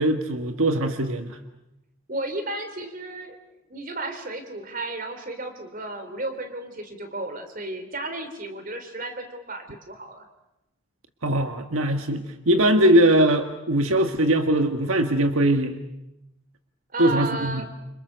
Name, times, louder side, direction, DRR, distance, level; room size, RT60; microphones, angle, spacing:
voice 1, 0.0-1.4 11.2-15.8 17.0-17.6, right 1 dB, 80° right, 6 dB, 1.6 m, -21 dB
voice 2, 2.1-3.4 3.7-10.3 12.8-13.0 16.9-17.7, right 2 dB, 40° right, 7 dB, 3.7 m, -33 dB
29.0 x 26.5 x 6.8 m, 0.89 s
head